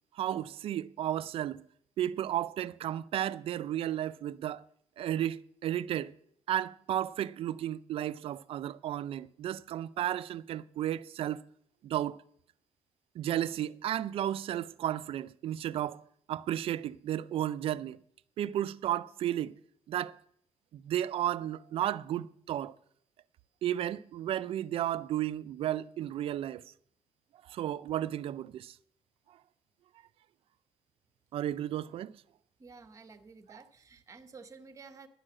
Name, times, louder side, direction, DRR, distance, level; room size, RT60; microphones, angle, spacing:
voice 1, 0.1-1.6 2.0-4.6 5.0-6.1 6.5-11.4 11.8-12.2 13.2-16.0 16.3-18.0 18.4-19.6 19.9-20.2 20.7-22.7 23.6-26.6 27.5-28.7 31.3-32.1 33.5-33.6, right 12 dB, 50° right, 0.4 m, -33 dB
voice 2, 32.6-35.1, right 4 dB, 25° right, 0.9 m, -51 dB
11.0 x 6.3 x 8.7 m
cardioid pair, 160°, 12 cm